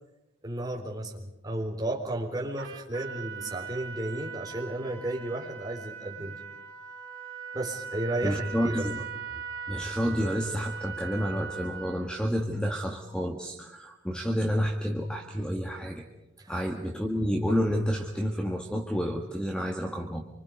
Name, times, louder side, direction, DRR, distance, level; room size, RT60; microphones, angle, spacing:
voice 1, 0.4-6.4 7.5-8.9 16.4-16.6, right 1 dB, 20° right, -2 dB, 4.0 m, -33 dB
Trumpet, 2.6-12.1, right 6 dB, 80° right, 3.6 m, -40 dB
voice 2, 8.2-9.0 9.7-16.0 16.5-20.3, equal, 5° left, 2 dB, 1.6 m, -29 dB
27.0 x 25.0 x 5.3 m, 0.91 s
head